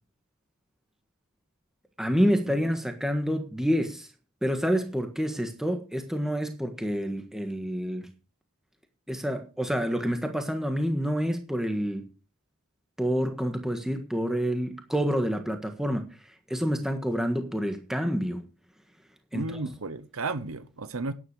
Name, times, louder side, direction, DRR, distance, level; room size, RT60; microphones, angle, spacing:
voice 1, 2.0-4.1 4.4-8.1 9.1-12.1 13.0-16.1 16.5-18.5 19.3-19.7, equal, ahead, 1.5 m, -28 dB
voice 2, 19.3-21.1, right 3 dB, 70° right, 0.9 m, -33 dB
12.0 x 10.0 x 4.8 m
head